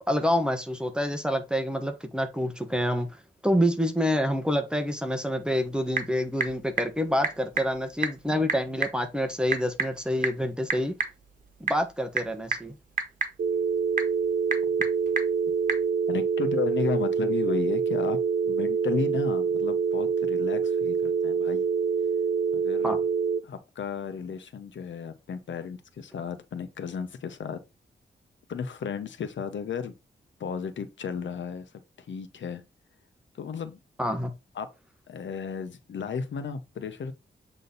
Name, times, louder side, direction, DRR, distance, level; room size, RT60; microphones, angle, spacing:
voice 1, 0.0-3.1 3.4-11.0 11.6-12.8 22.8-23.0 34.0-34.3, equal, 5° right, 1.2 m, -27 dB
Typing / Telephone, 5.4-15.9, right 4 dB, 45° right, 1.5 m, -34 dB
sound 1, 13.4-23.4, right 6 dB, 65° right, 0.7 m, -26 dB
voice 2, 16.1-18.2 18.4-21.7 22.5-23.0 23.4-27.6 28.5-29.9 30.4-31.7 32.0-32.6 33.3-33.8 34.5-34.7 35.1-37.1, left 6 dB, 85° left, 1.1 m, -33 dB
8.0 x 3.8 x 4.0 m
wide cardioid pair, 130°, 19 cm